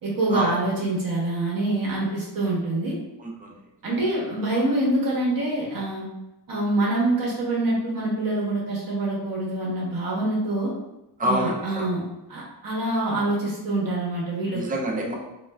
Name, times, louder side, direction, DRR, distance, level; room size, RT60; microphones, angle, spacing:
voice 1, 0.0-2.9 3.8-6.0 6.5-10.7 11.2-12.0 12.3-14.7, right 2 dB, 55° right, -5 dB, 0.9 m, -25 dB
voice 2, 3.2-3.6 11.2-11.8 14.5-15.2, equal, 20° right, -1 dB, 0.4 m, -27 dB
3.1 x 2.3 x 2.2 m, 0.94 s
wide cardioid pair, 145°, 41 cm